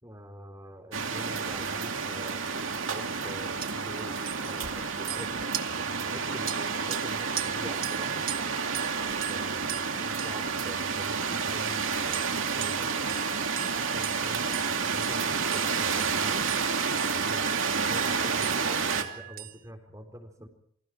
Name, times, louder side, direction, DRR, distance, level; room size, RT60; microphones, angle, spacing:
voice 1, 0.0-2.4 2.9-5.4 5.8-8.2 9.3-13.2 13.7-16.5 17.1-17.5 17.7-20.5, equal, 15° right, 5 dB, 4.0 m, -45 dB
sound 1, 0.9-19.0, right 5 dB, 85° right, 2.6 m, -30 dB
sound 2, 2.5-2.8 3.1-3.3 3.6-3.7 4.2-11.2 11.7-19.6, right 12 dB, 45° right, 1.5 m, -40 dB
28.5 x 25.0 x 4.7 m, 0.68 s
head